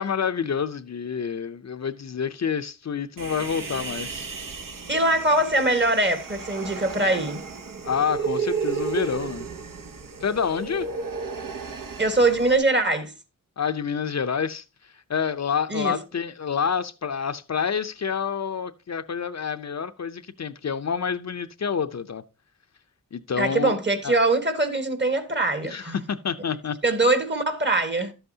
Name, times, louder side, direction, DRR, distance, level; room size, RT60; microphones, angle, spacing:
voice 1, 0.0-4.3 7.8-9.5 10.2-10.9 13.6-22.2 23.1-23.7 24.0-24.2 25.6-26.8, left 6 dB, 55° left, 0.6 m, -28 dB
Human voice, 3.2-12.6, right 5 dB, 70° right, 1.0 m, -33 dB
voice 2, 4.9-7.4 12.0-13.1 15.7-15.9 23.4-26.0 26.8-28.1, right 2 dB, 35° right, 1.4 m, -22 dB
11.5 x 7.9 x 2.8 m
wide cardioid pair, 80°, 34 cm